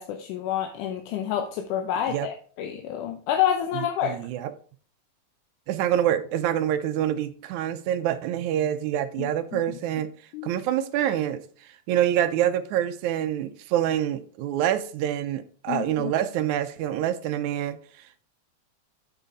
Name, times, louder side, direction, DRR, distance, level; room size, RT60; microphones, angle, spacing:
voice 1, 0.0-4.2 9.2-9.6 10.3-10.5 15.7-16.1, left 10 dB, 85° left, 2.3 m, -28 dB
voice 2, 3.7-4.5 5.7-10.1 10.4-11.4 11.9-17.8, right 11 dB, 75° right, 2.0 m, -26 dB
7.8 x 6.6 x 4.0 m
omnidirectional pair, 3.5 m